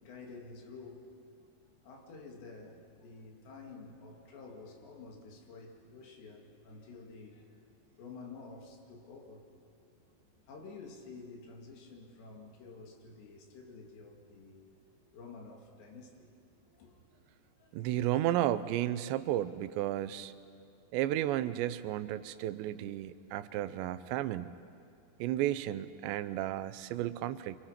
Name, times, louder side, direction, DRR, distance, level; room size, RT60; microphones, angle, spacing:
voice 1, 0.0-1.1 1.8-7.6 8.0-9.4 9.8-9.9 10.5-14.6 15.1-16.3 16.7-17.2 17.6-17.7, left 4 dB, 80° left, 0 dB, 4.6 m, -50 dB
voice 2, 17.7-20.3 20.9-24.5 25.2-27.6, right 13 dB, 90° right, 13 dB, 3.0 m, -33 dB
27.0 x 25.0 x 5.8 m, 2.4 s
omnidirectional pair, 5.0 m